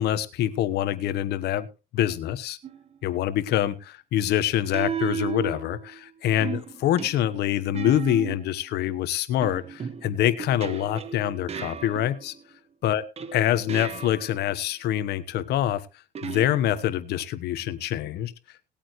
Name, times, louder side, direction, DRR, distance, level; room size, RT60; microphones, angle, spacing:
voice 1, 0.0-1.7 1.9-2.6 3.0-12.3 12.8-13.0 13.3-15.8 16.2-18.3, left 12 dB, 75° left, 13 dB, 1.2 m, -25 dB
sound 1, 2.6-3.0 4.7-6.0 6.4-8.6 9.4-12.4 13.2-14.4 16.2-17.0, right 7 dB, 40° right, 1.2 m, -35 dB
19.5 x 8.7 x 3.2 m, 0.30 s
cardioid pair, 110°, 17 cm